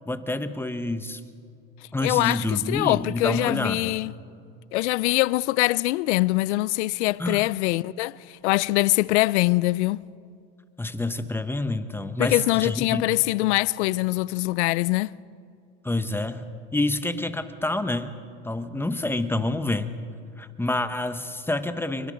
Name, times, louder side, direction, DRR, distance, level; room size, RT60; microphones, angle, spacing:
voice 1, 0.1-1.2 1.9-3.9 7.2-7.4 10.8-13.2 15.8-16.4 16.7-18.2 18.4-20.0 20.4-22.1, left 2 dB, 5° left, 1.0 m, -28 dB
voice 2, 2.0-4.1 4.7-10.0 12.2-15.1, left 20 dB, 85° left, 0.5 m, -23 dB
29.0 x 23.5 x 5.2 m
supercardioid pair, 120°, 34 cm